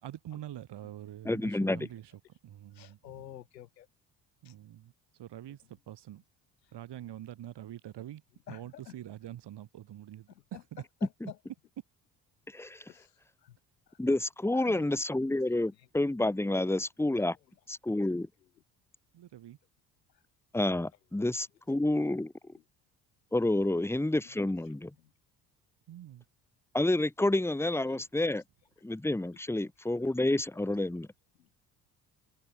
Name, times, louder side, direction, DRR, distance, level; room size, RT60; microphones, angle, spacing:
voice 1, 0.0-2.0 2.4-3.3 4.4-4.9 5.2-5.6 5.9-6.2 6.7-8.2 8.5-10.2 10.7-10.8 19.1-19.6 25.9-26.2, right 12 dB, 55° right, 3.8 m, -45 dB
voice 2, 1.2-1.9 12.5-12.8 14.0-17.4 17.7-18.3 20.5-22.3 23.3-24.9 26.7-28.4 28.8-31.1, left 2 dB, 5° left, 1.5 m, -29 dB
voice 3, 2.8-3.9 4.5-4.6 5.5-5.6 8.5-9.0 10.3-11.4 12.9-13.1 13.4-13.6 13.9-14.0 14.5-14.9 15.8-15.9 17.2-17.3 18.4-18.5 21.1-21.2 22.5-22.6 24.2-24.4 25.0-25.1 27.9-28.4 30.7-30.8 31.4-31.5, left 12 dB, 85° left, 3.8 m, -50 dB
open air
hypercardioid pair, 50°, 49 cm